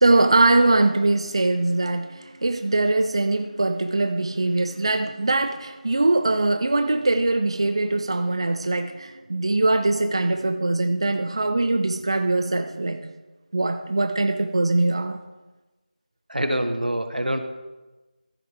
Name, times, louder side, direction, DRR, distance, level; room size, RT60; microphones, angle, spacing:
voice 1, 0.0-13.1 13.5-15.2, right 2 dB, 35° right, 0.4 m, -22 dB
voice 2, 16.3-17.4, right 1 dB, 90° right, 1.2 m, -25 dB
14.5 x 7.5 x 3.5 m
figure-of-eight pair, 170°, 4 cm